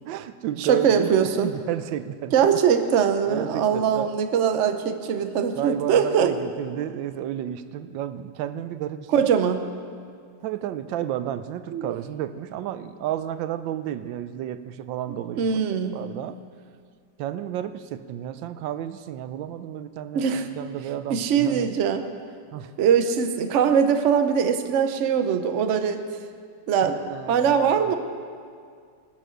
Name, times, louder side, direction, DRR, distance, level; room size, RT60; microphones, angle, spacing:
voice 1, 0.1-2.3 2.8-2.9 3.3-4.1 5.5-9.1 10.4-15.6 15.9-16.4 17.2-21.7 22.5-22.7 26.9-27.9, right 11 dB, 85° right, 12 dB, 1.3 m, -32 dB
voice 2, 0.6-1.5 2.3-6.3 9.1-9.7 11.7-11.9 15.4-16.0 20.1-20.5 21.1-22.1 22.8-26.0 26.7-27.0 27.3-28.0, right 7 dB, 55° right, 8 dB, 0.9 m, -22 dB
20.5 x 7.6 x 6.4 m, 2.1 s
omnidirectional pair, 2.0 m